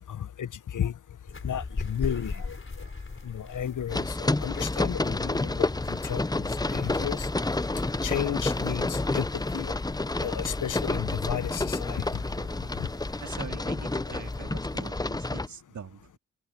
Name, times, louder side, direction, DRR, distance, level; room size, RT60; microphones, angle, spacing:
voice 1, 0.1-0.9 1.4-2.6 3.2-7.3 8.0-9.2 9.5-9.7 10.2-12.0, left 9 dB, 65° left, 1.3 m, -33 dB
sound 1, 1.3-15.1, left 4 dB, 40° left, 4.3 m, -40 dB
voice 2, 2.8-3.5 13.2-16.2, right 6 dB, 60° right, 2.7 m, -45 dB
sound 2, 3.9-15.5, left 2 dB, 10° left, 0.7 m, -30 dB
open air
cardioid pair, 55°, 33 cm